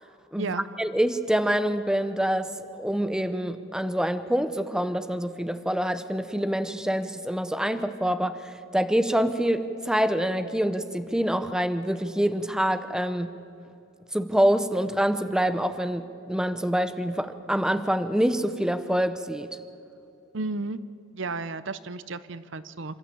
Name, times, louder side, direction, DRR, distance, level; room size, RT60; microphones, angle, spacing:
voice 1, 0.3-13.3 14.1-19.5, equal, 5° right, 10 dB, 0.7 m, -26 dB
voice 2, 20.3-20.8 21.1-23.0, right 3 dB, 70° right, 15 dB, 0.7 m, -33 dB
27.5 x 13.5 x 8.5 m, 2.8 s
head